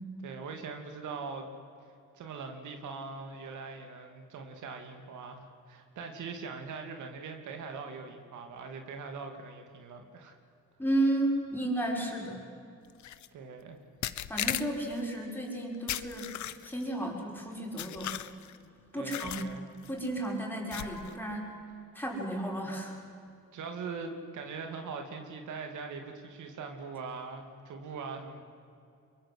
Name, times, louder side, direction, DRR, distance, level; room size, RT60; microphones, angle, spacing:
voice 1, 0.2-1.5 2.1-10.4 13.3-13.8 19.0-19.7 23.5-28.4, right 4 dB, 75° right, 4 dB, 2.8 m, -41 dB
voice 2, 10.8-12.4 14.3-16.4 16.6-18.1 18.9-19.4 19.9-21.5 21.9-22.9, right 1 dB, 5° left, -1 dB, 6.4 m, -33 dB
sound 1, 13.0-13.3 14.0-15.0 15.9-16.8 17.8-18.6 19.1-19.5 19.8-20.1 20.7-21.1, left 12 dB, 70° left, 1.0 m, -36 dB
24.0 x 23.0 x 8.0 m, 2.5 s
cardioid pair, 90°, 30 cm